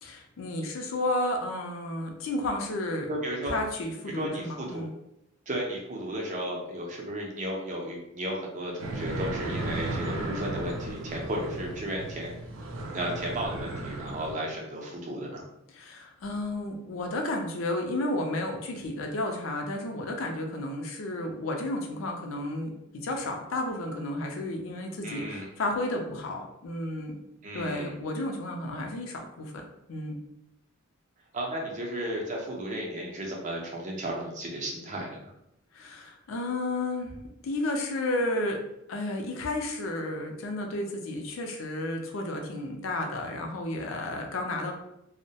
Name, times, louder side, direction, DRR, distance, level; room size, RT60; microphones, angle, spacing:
voice 1, 0.0-3.1 3.5-4.9 15.7-27.2 27.5-30.2 35.7-37.2 37.4-38.6 38.9-44.7, left 1 dB, 75° left, 3 dB, 0.4 m, -32 dB
voice 2, 3.1-3.5 4.1-4.8 5.5-12.3 12.9-15.4 25.0-25.5 27.4-27.9 31.3-35.3, right 1 dB, 35° right, -1 dB, 0.5 m, -34 dB
sound 1, 8.8-14.3, right 2 dB, 90° right, 0.5 m, -35 dB
2.2 x 2.0 x 2.7 m, 0.83 s
head